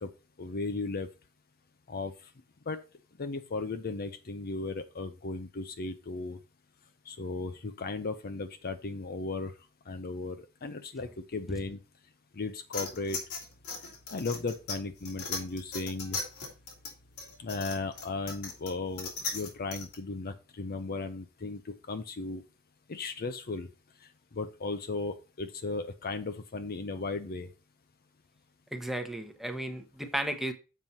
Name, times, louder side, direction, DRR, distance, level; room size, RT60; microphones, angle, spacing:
voice 1, 0.4-1.1 1.9-2.1 2.7-2.8 3.2-6.4 7.1-9.5 9.9-11.8 12.3-13.2 14.1-16.2 17.4-22.4 22.9-23.7 24.3-27.5, left 3 dB, 45° left, 0.6 m, -36 dB
sound 1, 12.7-19.9, left 4 dB, 85° left, 3.1 m, -38 dB
voice 2, 28.7-30.5, right 1 dB, ahead, 1.0 m, -34 dB
7.4 x 4.5 x 5.4 m
head